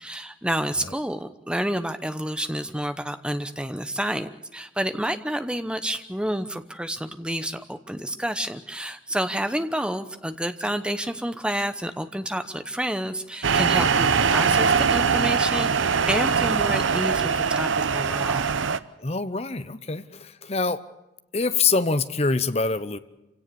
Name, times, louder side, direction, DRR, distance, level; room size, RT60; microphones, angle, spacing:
voice 1, 0.0-18.6, right 1 dB, 5° right, 10 dB, 0.9 m, -29 dB
sound 1, 13.4-18.8, right 6 dB, 85° right, 0.8 m, -22 dB
voice 2, 19.0-20.8 21.3-23.0, left 4 dB, 35° left, 12 dB, 0.9 m, -25 dB
26.5 x 17.0 x 7.0 m, 0.95 s
head